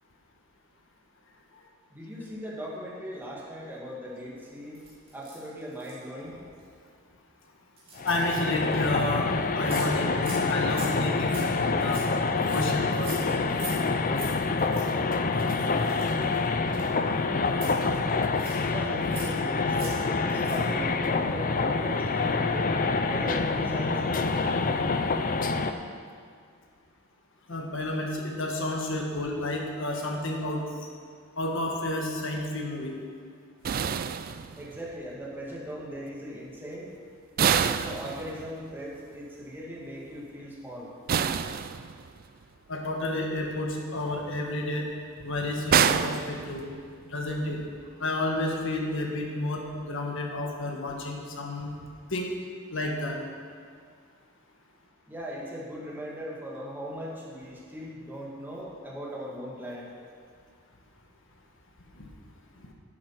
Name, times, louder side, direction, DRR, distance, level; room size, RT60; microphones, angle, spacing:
voice 1, 1.9-4.8 5.1-6.4 18.6-22.7 23.1-25.0 34.6-36.9 37.4-40.9 55.1-59.9, equal, 10° right, -5 dB, 1.9 m, -39 dB
sound 1, 4.7-6.0 6.6-6.8 7.8-8.8 9.2-9.3 9.4-9.9 10.2-10.4 10.7-13.8 14.1-14.3 14.6-14.9 15.3-17.1 17.5-18.6 19.0-19.4 19.7-20.0 20.3-20.7, right 3 dB, 25° right, 2.8 m, -43 dB
voice 2, 8.0-12.0 12.5-13.1 27.5-30.6 31.4-33.0 42.7-44.8 45.2-46.6 47.1-47.6 48.0-51.7 52.1-52.3 52.7-53.2 62.0-62.1, left 2 dB, 60° left, 1 dB, 1.6 m, -31 dB
sound 2, 8.0-25.7, left 4 dB, 40° left, 0.5 m, -27 dB
sound 3, 33.6-34.9 37.4-38.7 41.1-42.3 45.7-47.0, right 8 dB, 40° right, 0.3 m, -27 dB
10.5 x 7.9 x 5.8 m, 2.1 s
head